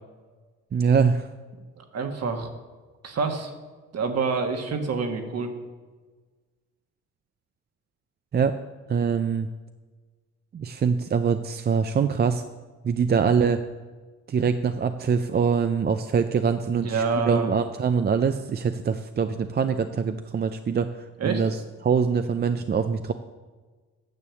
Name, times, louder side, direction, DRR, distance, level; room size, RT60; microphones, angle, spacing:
voice 1, 0.7-1.3 8.3-8.5 8.9-9.5 10.5-12.4 12.8-13.6 14.3-20.9 21.2-21.6 21.8-23.1, right 6 dB, 35° right, 9 dB, 0.5 m, -23 dB
voice 2, 1.8-2.5 3.0-3.5 3.9-5.5 16.7-17.6 21.2-21.4, right 4 dB, 55° right, 5 dB, 1.6 m, -27 dB
9.9 x 6.8 x 7.0 m, 1.4 s
cardioid pair, 90°, 30 cm